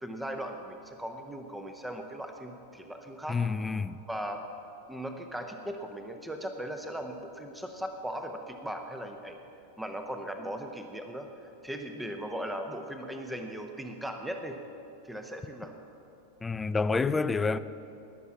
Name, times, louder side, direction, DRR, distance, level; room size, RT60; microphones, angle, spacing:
voice 1, 0.0-3.4 4.1-4.4 4.9-9.4 9.8-14.6 15.0-15.7, equal, 5° right, 0.9 m, -38 dB
voice 2, 3.3-4.0 16.4-17.6, left 4 dB, 15° left, 0.4 m, -28 dB
20.0 x 7.2 x 7.1 m
figure-of-eight pair, 90°, 0 cm